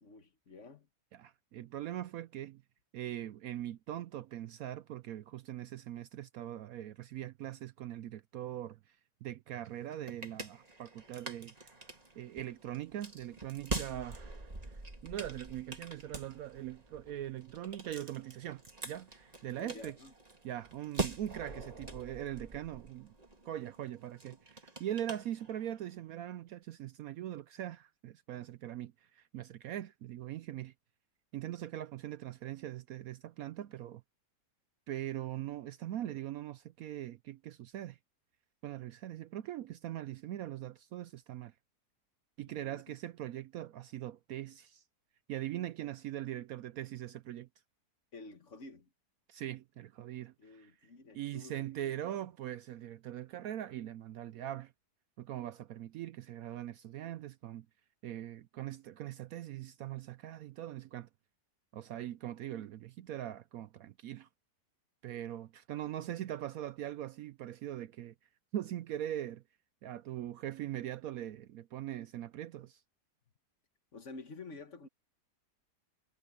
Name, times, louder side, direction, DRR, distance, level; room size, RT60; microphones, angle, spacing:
voice 1, 0.0-0.9 19.6-20.1 42.4-43.0 48.1-48.9 50.4-52.2 65.8-66.4 73.9-74.9, left 3 dB, 45° left, 1.7 m, -51 dB
voice 2, 1.1-2.6 2.9-11.7 12.1-20.0 20.4-23.1 23.4-30.7 31.3-34.0 34.9-38.0 38.6-41.5 42.4-44.8 45.3-47.5 49.3-50.7 51.1-54.7 55.2-57.7 58.0-61.1 61.7-64.3 65.0-68.1 68.5-69.4 69.8-72.8, right 12 dB, 70° right, 0.9 m, -41 dB
sound 1, 9.6-25.9, right 3 dB, 25° right, 2.1 m, -44 dB
omnidirectional pair, 1.8 m